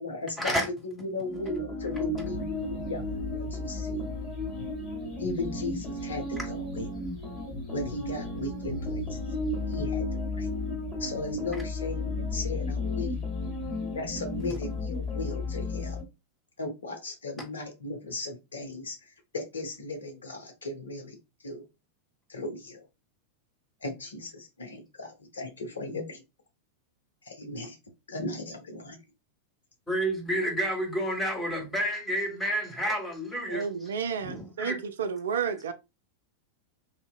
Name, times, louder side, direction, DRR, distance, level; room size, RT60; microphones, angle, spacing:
voice 1, 0.0-0.6 0.8-4.1 5.2-6.9 7.7-9.2 9.7-10.0 10.4-10.5 11.0-13.1 13.9-16.0 16.6-21.2 21.4-21.6 22.3-22.8 23.8-26.2 27.3-27.8 28.1-29.0, left 2 dB, 70° left, 0.8 m, -36 dB
sound 1, 1.2-16.0, left 2 dB, 30° left, 1.9 m, -33 dB
voice 2, 29.9-33.6 34.2-34.8, equal, 10° left, 1.6 m, -30 dB
voice 3, 33.5-35.7, right 6 dB, 65° right, 0.4 m, -31 dB
3.6 x 2.7 x 2.3 m
figure-of-eight pair, 90°, 0 cm